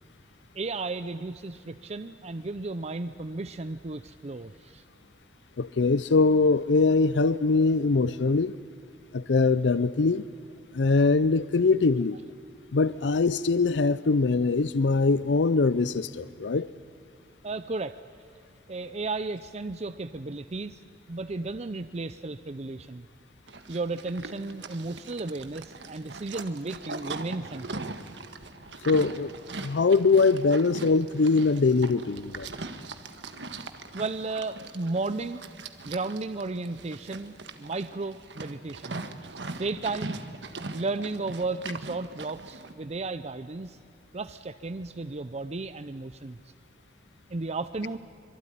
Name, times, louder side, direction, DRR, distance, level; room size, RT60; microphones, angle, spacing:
voice 1, 0.5-4.8 17.4-17.9 18.7-20.8 21.1-23.1 23.7-27.9 30.4-30.5 33.9-35.4 35.8-39.0 39.5-40.2 40.7-43.8 44.1-46.4 47.3-48.0, right 3 dB, 40° right, 0.6 m, -34 dB
voice 2, 5.6-8.5 9.1-10.2 10.7-12.2 12.7-16.7 28.8-29.3 29.6-32.5, left 4 dB, 80° left, 0.6 m, -22 dB
Livestock farm animals working animals, 23.5-42.7, right 3 dB, 80° right, 1.6 m, -41 dB
25.5 x 23.0 x 10.0 m
head